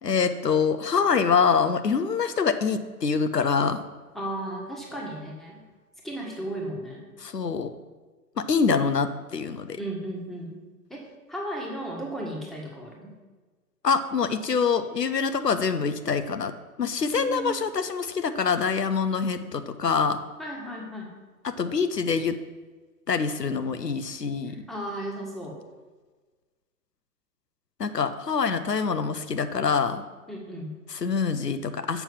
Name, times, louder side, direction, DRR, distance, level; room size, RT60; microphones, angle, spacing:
voice 1, 0.0-3.8 7.2-7.7 8.4-9.8 13.8-20.2 21.4-22.3 23.1-24.6 27.8-30.0 30.9-32.0, left 5 dB, 85° left, 10 dB, 0.8 m, -25 dB
voice 2, 4.1-5.6 6.0-7.0 9.8-10.6 10.9-13.1 17.1-17.5 20.4-21.1 24.5-25.6 30.3-30.7, right 1 dB, ahead, -2 dB, 1.4 m, -35 dB
7.1 x 5.6 x 7.1 m, 1.3 s
figure-of-eight pair, 115°, 47 cm